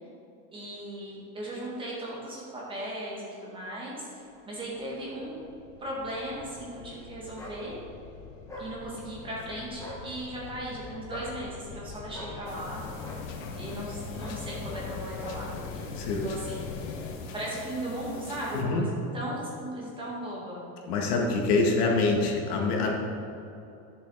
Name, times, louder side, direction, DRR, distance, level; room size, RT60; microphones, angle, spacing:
voice 1, 0.5-5.4 5.8-7.8 8.6-12.9 13.6-15.9 16.2-16.8 17.3-20.7, right 1 dB, 10° right, -5 dB, 1.8 m, -37 dB
sound 1, 4.6-17.2, left 5 dB, 30° left, 0.3 m, -42 dB
sound 2, 7.4-7.6 8.5-8.7 9.7-10.0 11.1-11.3 12.1-12.3 13.0-13.2 14.2-14.4 14.7-14.9 15.2-15.4, equal, 5° left, 1.1 m, -42 dB
sound 3, 12.5-18.6, left 4 dB, 65° left, 1.4 m, -44 dB
voice 2, 18.5-18.8 20.9-22.9, left 3 dB, 80° left, 0 dB, 2.0 m, -25 dB
11.5 x 6.9 x 4.8 m, 2.7 s
supercardioid pair, 180°, 45 cm